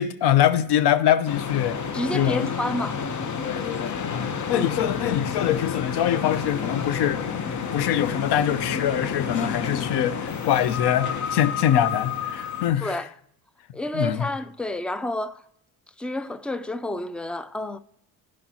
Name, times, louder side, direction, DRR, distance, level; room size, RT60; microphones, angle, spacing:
voice 1, 0.0-1.8 2.1-2.5 3.4-13.0 13.9-14.3, left 10 dB, 85° left, 0.8 m, -24 dB
sound 1, 1.3-12.7, left 6 dB, 45° left, 1.0 m, -30 dB
voice 2, 1.9-3.0 4.5-4.7 12.8-13.1 13.7-15.4 16.0-17.8, left 1 dB, 5° left, 0.3 m, -30 dB
15.5 x 5.2 x 2.9 m
cardioid pair, 105°, 39 cm